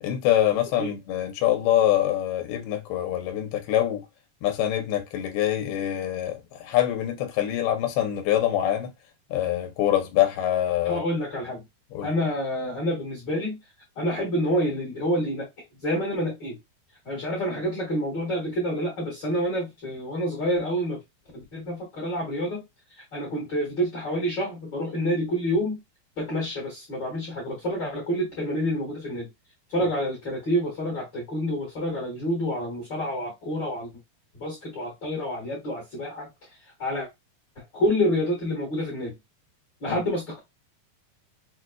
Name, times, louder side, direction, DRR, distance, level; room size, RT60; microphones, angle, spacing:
voice 1, 0.0-4.1 4.4-8.9 9.3-11.0 11.9-12.1 39.9-40.0, left 12 dB, 90° left, 2.6 m, -25 dB
voice 2, 10.8-11.6 12.0-13.6 13.9-15.5 15.8-16.6 17.0-21.0 21.3-22.6 23.1-25.7 26.2-29.3 29.7-33.9 34.3-36.3 36.8-37.1 37.5-39.1 39.8-40.4, equal, 55° left, 1.2 m, -28 dB
6.2 x 2.2 x 2.3 m
omnidirectional pair, 4.5 m